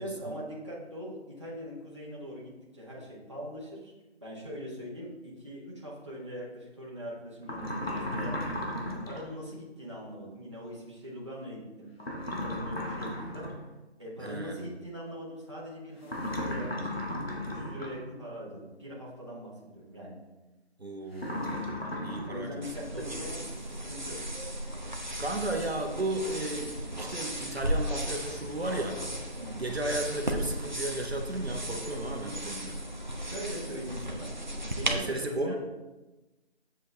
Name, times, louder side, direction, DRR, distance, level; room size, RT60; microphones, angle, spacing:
voice 1, 0.0-3.9 4.2-8.6 9.0-13.5 14.0-20.2 22.3-23.4 23.9-24.3 29.4-29.6 33.1-34.3 34.8-35.5, equal, 25° right, -7 dB, 1.4 m, -42 dB
sound 1, 7.4-9.3 12.0-13.6 16.0-18.0 21.2-22.4, left 1 dB, 60° left, 1.7 m, -35 dB
voice 2, 14.2-14.7 20.8-21.7 22.0-23.1 25.2-29.0 29.6-32.8 34.9-35.5, right 2 dB, 65° right, 1 dB, 1.3 m, -34 dB
sound 2, 22.6-35.0, equal, 40° right, 0.9 m, -35 dB
8.3 x 7.4 x 3.4 m, 1.1 s
figure-of-eight pair, 180°, 34 cm